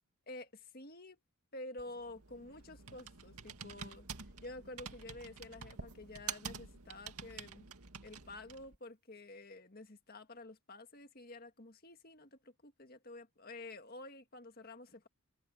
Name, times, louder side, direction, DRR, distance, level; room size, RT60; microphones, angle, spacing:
voice 1, 0.3-1.2 1.5-7.7 8.0-15.1, left 2 dB, 40° left, 1.8 m, -50 dB
Computer keyboard, 1.8-8.8, right 6 dB, 85° right, 2.2 m, -48 dB
head